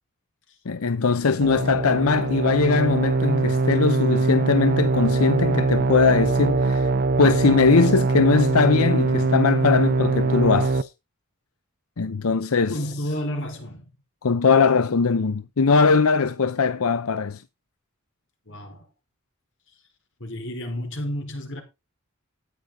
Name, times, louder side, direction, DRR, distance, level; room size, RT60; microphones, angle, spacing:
voice 1, 0.7-6.9 7.2-10.9 12.0-12.8 14.2-17.4, left 4 dB, 85° left, 0.7 m, -20 dB
sound 1, 1.4-10.8, right 3 dB, 45° right, 0.7 m, -22 dB
voice 2, 12.7-13.9 18.5-18.9 20.2-21.6, equal, 60° left, 4.7 m, -31 dB
13.5 x 9.5 x 3.9 m
head